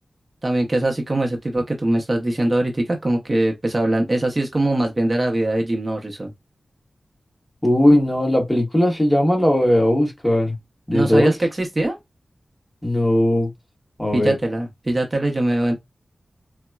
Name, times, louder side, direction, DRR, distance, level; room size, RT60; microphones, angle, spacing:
voice 1, 0.4-6.3 10.9-12.0 14.1-15.8, right 1 dB, 35° right, 0.7 m, -22 dB
voice 2, 7.6-10.5 10.9-11.3 12.8-13.5 14.0-14.3, left 1 dB, 15° left, 1.1 m, -18 dB
3.8 x 2.1 x 2.3 m
wide cardioid pair, 70°, 0 cm